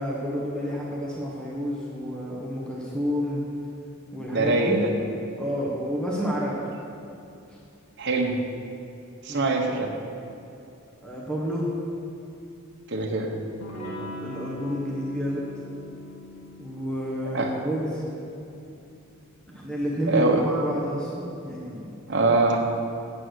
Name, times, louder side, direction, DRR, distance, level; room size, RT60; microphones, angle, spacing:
voice 1, 0.0-3.4 4.1-4.8 5.4-6.5 7.5-7.6 9.3-9.7 11.0-11.7 13.8-15.5 16.6-18.1 19.5-21.9, equal, 5° left, -5 dB, 1.2 m, -30 dB
voice 2, 4.3-4.9 8.0-8.4 9.2-9.9 12.9-13.3 17.3-17.5 20.1-20.4 22.1-22.6, right 2 dB, 55° right, 2 dB, 1.2 m, -23 dB
Electric guitar / Strum, 13.6-19.0, left 1 dB, 80° left, 1.9 m, -41 dB
8.8 x 8.4 x 6.5 m, 2.8 s
head